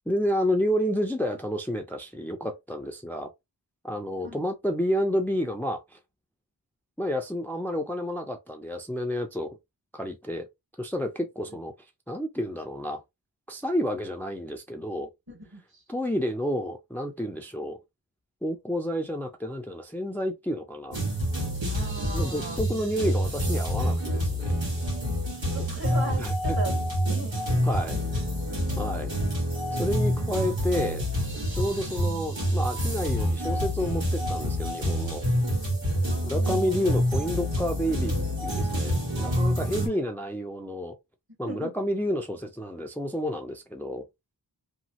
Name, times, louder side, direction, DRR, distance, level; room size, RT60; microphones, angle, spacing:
voice 1, 0.1-3.3 3.8-6.0 7.0-9.6 9.9-10.5 10.8-11.7 12.1-13.0 13.5-15.1 15.9-17.8 18.4-21.0 22.1-24.5 26.2-26.6 27.6-28.0 28.8-29.1 29.7-31.0 31.5-35.2 36.2-41.0 41.4-44.1, equal, 5° left, 0.5 m, -30 dB
voice 2, 15.3-15.8 21.7-22.6 25.4-26.7 27.1-27.3 27.9-28.4 36.1-36.9 39.8-40.0 41.4-41.7, right 1 dB, 55° right, 1.8 m, -38 dB
sound 1, 20.9-39.9, equal, 85° right, 1.5 m, -27 dB
3.0 x 2.3 x 2.8 m
wide cardioid pair, 45°, 44 cm